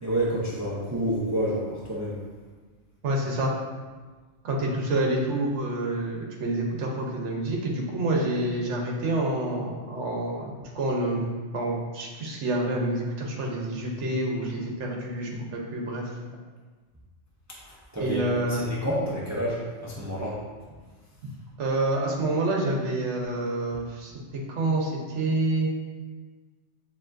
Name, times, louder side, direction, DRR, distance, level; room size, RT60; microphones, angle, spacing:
voice 1, 0.0-2.2 17.9-20.4, right 1 dB, 20° right, -6 dB, 0.4 m, -29 dB
voice 2, 3.0-3.5 4.4-16.0 18.0-18.6 21.6-24.1 24.5-25.7, right 1 dB, 70° right, 0 dB, 1.1 m, -28 dB
6.9 x 2.8 x 2.5 m, 1.4 s
omnidirectional pair, 1.3 m